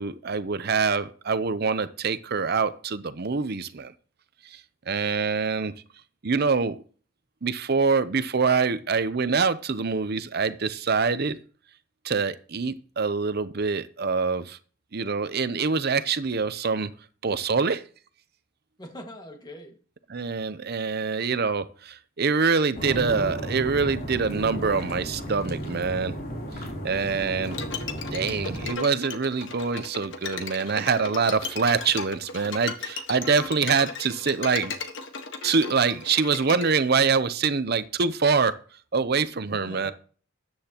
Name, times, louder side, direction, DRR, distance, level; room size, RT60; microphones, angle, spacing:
voice 1, 0.0-3.9 4.4-4.6 4.9-5.7 6.2-6.8 7.4-11.4 12.0-14.6 14.9-16.9 17.2-17.8 20.1-26.1 26.8-27.6 28.1-34.7 35.4-38.5 38.9-39.9, right 5 dB, 50° right, 12 dB, 0.6 m, -25 dB
voice 2, 18.8-19.8 26.9-27.2 39.5-39.9, equal, 20° left, 3 dB, 1.8 m, -43 dB
sound 1, 22.7-28.7, right 1 dB, 45° left, 3.4 m, -34 dB
Bowed string instrument, 27.5-36.7, left 5 dB, 60° left, 1.4 m, -36 dB
13.5 x 9.7 x 2.9 m, 0.41 s
head